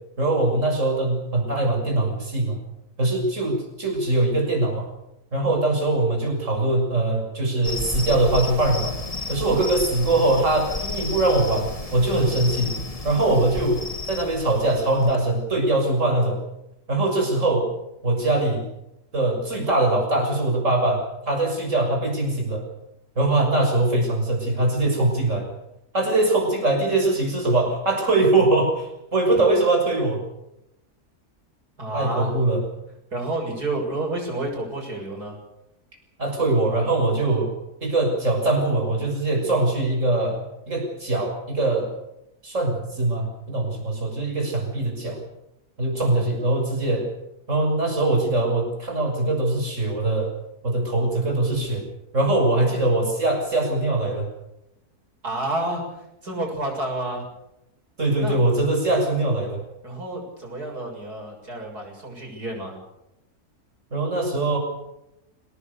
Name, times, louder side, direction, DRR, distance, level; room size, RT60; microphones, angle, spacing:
voice 1, 0.2-2.6 3.0-4.9 5.3-9.0 9.3-12.8 13.0-13.8 14.1-16.4 16.9-17.7 18.0-18.7 19.1-22.7 23.2-25.5 25.9-30.2 31.9-32.6 36.2-37.5 37.8-40.4 40.7-41.9 42.4-45.2 45.8-47.1 47.5-50.3 50.6-51.9 52.1-54.3 58.0-59.6 63.9-64.6, right 2 dB, 50° right, 2 dB, 7.1 m, -22 dB
sound 1, 7.6-15.2, left 3 dB, 25° left, 1.6 m, -33 dB
voice 2, 31.8-32.3 33.1-35.4 45.9-46.4 55.2-57.3 58.2-58.4 59.8-62.8, right 2 dB, 80° right, 1 dB, 7.6 m, -30 dB
26.5 x 19.0 x 6.9 m, 0.88 s
omnidirectional pair, 1.6 m